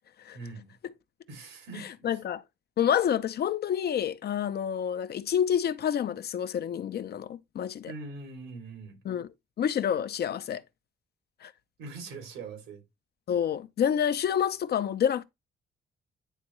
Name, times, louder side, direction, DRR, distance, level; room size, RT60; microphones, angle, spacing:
voice 1, 0.3-0.7 1.3-2.1 7.9-9.0 11.8-12.8, right 3 dB, 90° right, 2.8 m, -42 dB
voice 2, 2.0-2.4 2.8-7.9 9.0-9.3 9.6-10.6 11.4-11.5 13.3-15.2, left 9 dB, 55° left, 0.6 m, -28 dB
10.0 x 3.5 x 3.1 m
cardioid pair, 90°, 20 cm